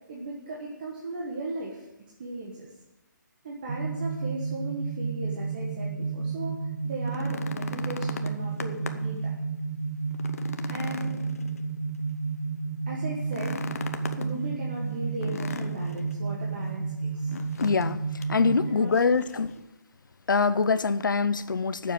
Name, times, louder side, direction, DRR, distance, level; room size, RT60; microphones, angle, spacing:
voice 1, 0.1-1.8 2.2-2.7 3.4-9.3 10.7-11.2 12.9-13.6 14.1-17.3 18.7-18.9, right 2 dB, 25° right, -3 dB, 1.4 m, -37 dB
sound 1, 3.7-18.7, right 4 dB, 60° right, 1.1 m, -32 dB
sound 2, 6.9-9.2 9.6-9.7 10.1-12.0 13.2-14.3 15.2-16.1 17.3-17.9 18.2-18.4 18.9-19.5 20.6-20.7, left 5 dB, 45° left, 0.9 m, -38 dB
voice 2, 17.6-19.5 20.3-21.9, left 4 dB, 85° left, 14 dB, 0.8 m, -24 dB
12.5 x 7.3 x 7.6 m, 0.95 s
hypercardioid pair, 180°, 11 cm